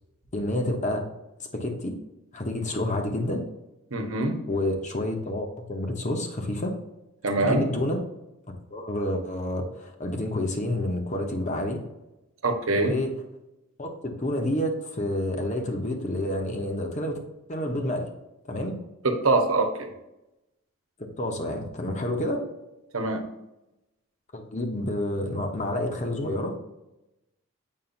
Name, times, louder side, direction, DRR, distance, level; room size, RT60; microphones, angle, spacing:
voice 1, 0.3-1.1 1.5-1.9 2.3-3.4 4.5-6.7 7.4-8.0 8.7-11.8 12.8-13.1 13.8-17.2 17.5-18.1 18.5-18.8 21.0-22.4 24.3-26.6, left 1 dB, 35° left, 3 dB, 1.0 m, -29 dB
voice 2, 3.9-4.4 7.2-7.6 12.4-12.9 19.0-19.9 22.9-23.3, right 2 dB, 75° right, 5 dB, 1.0 m, -24 dB
7.5 x 5.4 x 2.6 m, 0.94 s
head